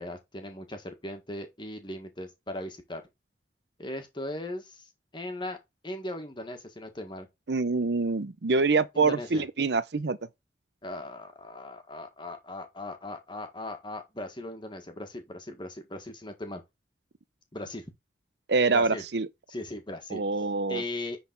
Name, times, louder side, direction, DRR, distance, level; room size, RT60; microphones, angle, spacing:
voice 1, 0.0-3.0 3.8-5.6 5.8-7.3 8.9-9.4 10.8-16.6 17.5-17.8 18.7-19.0 19.5-20.2 20.7-21.2, left 1 dB, 25° left, 1.6 m, -38 dB
voice 2, 7.5-10.2 18.5-19.3 20.1-20.8, right 4 dB, 65° right, 0.7 m, -25 dB
10.0 x 4.0 x 3.9 m
head